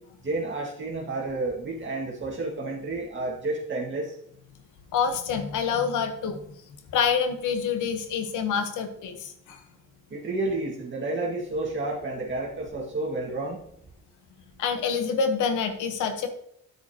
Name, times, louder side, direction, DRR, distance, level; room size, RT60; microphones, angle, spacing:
voice 1, 0.2-4.1 10.1-13.6, right 2 dB, 40° right, -3 dB, 1.8 m, -30 dB
voice 2, 4.9-6.4 6.9-9.6 14.6-16.3, left 6 dB, 85° left, 8 dB, 1.1 m, -27 dB
9.4 x 8.9 x 2.9 m, 0.70 s
cardioid pair, 90°, 30 cm